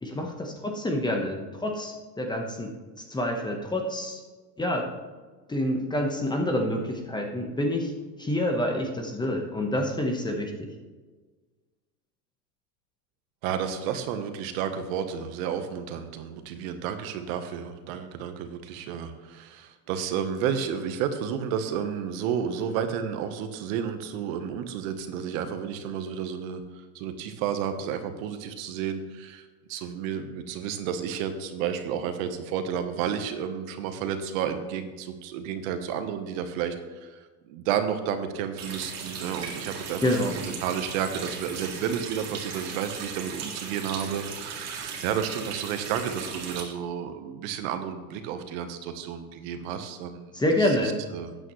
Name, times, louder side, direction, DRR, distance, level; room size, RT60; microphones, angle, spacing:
voice 1, 0.0-2.7 3.1-4.2 4.6-4.9 5.5-7.9 8.2-10.5 40.0-40.3 50.3-51.0, left 1 dB, 10° left, 3 dB, 1.1 m, -27 dB
voice 2, 13.4-26.6 26.9-36.7 37.0-37.2 37.5-50.3 50.6-51.5, right 8 dB, 60° right, 8 dB, 1.2 m, -31 dB
Water tap faucet, 38.6-46.6, right 5 dB, 35° right, 2.0 m, -37 dB
12.5 x 8.9 x 3.1 m, 1.4 s
supercardioid pair, 125°, 47 cm